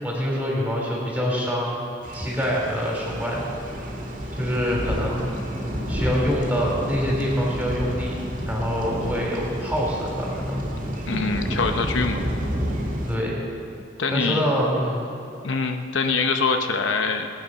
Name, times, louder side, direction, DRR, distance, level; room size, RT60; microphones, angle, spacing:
voice 1, 0.0-1.9 2.1-3.5 4.3-5.3 5.9-8.2 8.4-10.6 13.1-13.4 14.1-15.0, equal, 10° right, -3 dB, 3.2 m, -25 dB
sound 1, 2.0-13.2, equal, 45° right, 2.3 m, -30 dB
voice 2, 11.1-12.2 14.0-14.4 15.4-17.3, left 4 dB, 70° left, 5 dB, 0.8 m, -24 dB
19.5 x 9.1 x 5.5 m, 2.6 s
head